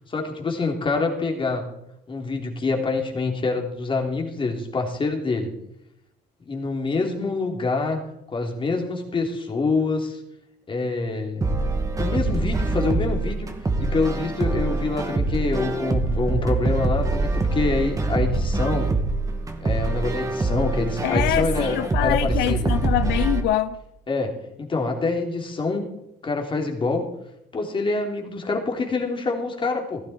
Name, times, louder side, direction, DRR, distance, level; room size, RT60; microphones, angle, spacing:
voice 1, 0.1-1.6 2.1-5.5 6.4-8.0 8.3-10.2 10.7-11.4 12.0-13.5 13.8-18.9 19.6-22.7 24.1-24.3 24.6-25.9 26.2-27.0 27.5-30.0, left 3 dB, 30° left, 3.3 m, -26 dB
sound 1, 11.4-23.4, right 3 dB, 20° right, 2.3 m, -24 dB
voice 2, 21.0-23.8, left 13 dB, 90° left, 0.7 m, -24 dB
16.5 x 14.0 x 4.4 m
cardioid pair, 110°, 17 cm